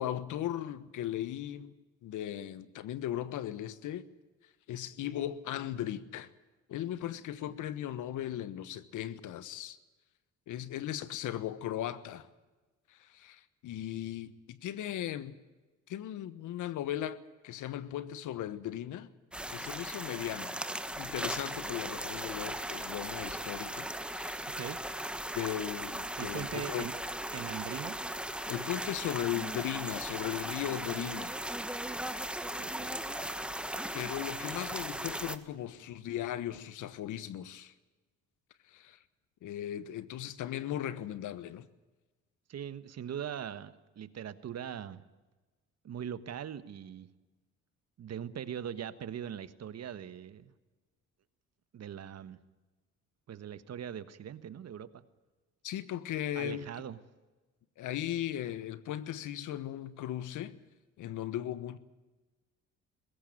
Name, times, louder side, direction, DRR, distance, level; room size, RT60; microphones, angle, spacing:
voice 1, 0.0-1.7 2.0-4.1 4.7-6.3 6.7-9.8 10.5-12.3 12.9-15.3 15.9-17.2 17.4-19.1 19.5-20.6 20.9-24.4 25.3-26.9 28.5-31.3 33.9-37.7 38.7-39.0 39.4-41.7 55.6-56.7 57.8-60.6 61.0-61.8, left 12 dB, 80° left, 1.3 m, -37 dB
sound 1, 19.3-35.4, right 1 dB, 5° right, 1.4 m, -38 dB
voice 2, 26.2-26.9 27.3-28.0 32.6-33.0 42.5-45.0 45.8-47.1 48.0-50.5 51.7-52.4 53.3-55.0 56.3-57.0, right 9 dB, 55° right, 1.4 m, -41 dB
20.5 x 16.5 x 9.2 m
cardioid pair, 90°, 30 cm